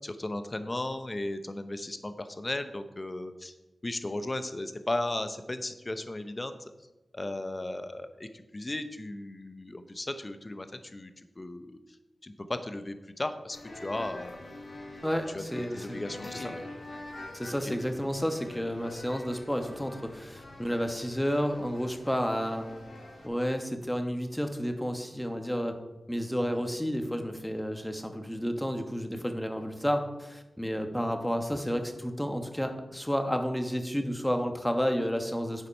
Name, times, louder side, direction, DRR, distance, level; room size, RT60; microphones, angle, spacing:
voice 1, 0.0-3.5 3.8-6.6 7.1-11.1 11.4-11.8 12.2-13.6 13.8-14.5 15.3-16.6 17.6-17.7, left 2 dB, 35° left, 9 dB, 0.7 m, -36 dB
sound 1, 13.5-23.3, left 2 dB, 80° left, 1.9 m, -46 dB
voice 2, 15.0-16.0 16.3-16.4 17.3-22.7 23.2-25.8 26.1-35.7, equal, 5° left, 6 dB, 1.2 m, -31 dB
9.9 x 4.1 x 5.3 m, 1.1 s
cardioid pair, 40°, 0 cm